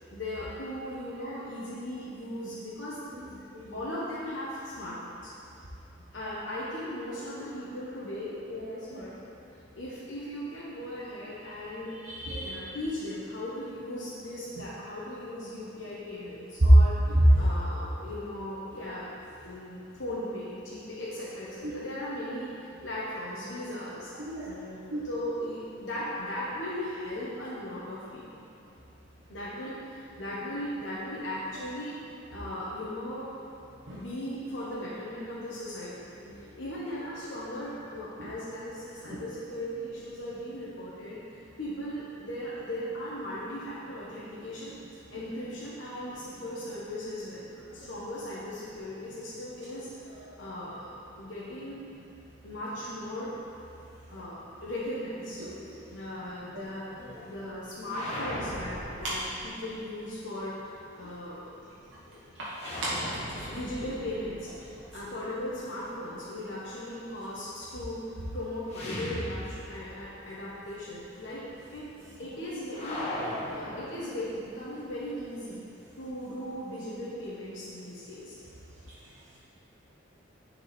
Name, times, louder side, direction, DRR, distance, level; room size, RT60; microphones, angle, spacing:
voice 1, 0.1-3.4 3.7-5.3 6.1-9.4 9.7-12.0 12.4-19.1 19.4-22.5 22.8-24.1 24.4-28.4 29.3-32.0 32.3-33.3 33.9-36.1 36.6-44.7 45.1-47.4 47.7-50.1 50.4-50.9 51.2-51.8 52.4-53.3 54.1-55.4 55.9-56.9 57.2-60.6 60.9-61.5 62.1-62.2 63.5-64.5 64.9-71.4 71.7-71.9 72.2-73.1 73.5-75.6 76.0-78.4, left 1 dB, 70° left, -8 dB, 1.2 m, -38 dB
voice 2, 12.1-12.5 16.6-16.7 17.1-17.4 24.3-24.5 24.9-25.0 33.9-34.0 38.2-38.3 47.8-47.9 57.0-57.2 62.4-62.5 62.8-63.5, right 1 dB, 65° right, -8 dB, 1.2 m, -26 dB
sound 1, 57.9-59.9 62.5-65.5 68.7-70.1 70.4-70.5 72.7-74.5, left 1 dB, 35° left, 1.3 m, -38 dB
10.0 x 4.7 x 4.3 m, 2.7 s
head